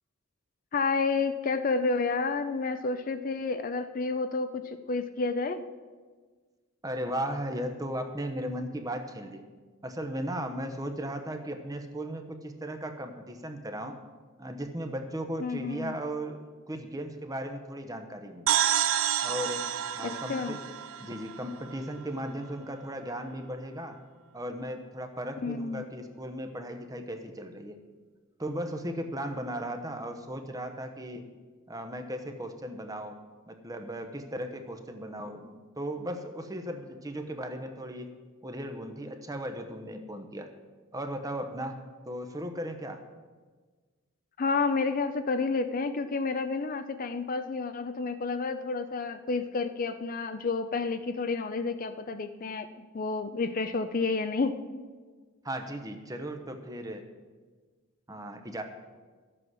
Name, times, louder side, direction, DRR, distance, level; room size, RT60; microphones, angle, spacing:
voice 1, 0.7-5.6 15.4-16.0 20.0-20.6 25.4-25.8 44.4-52.7 52.9-54.6, left 4 dB, 40° left, 10 dB, 0.5 m, -30 dB
voice 2, 6.8-9.4 9.8-14.0 14.4-18.5 19.2-19.7 19.9-20.6 21.0-24.0 24.3-27.8 28.4-31.3 31.7-33.2 33.5-38.1 38.4-40.5 40.9-41.8 42.1-43.0 55.4-57.0 58.1-58.6, right 1 dB, 15° right, 6 dB, 0.9 m, -36 dB
sound 1, 18.5-22.1, right 10 dB, 65° right, 0.5 m, -29 dB
12.5 x 7.8 x 6.2 m, 1.4 s
head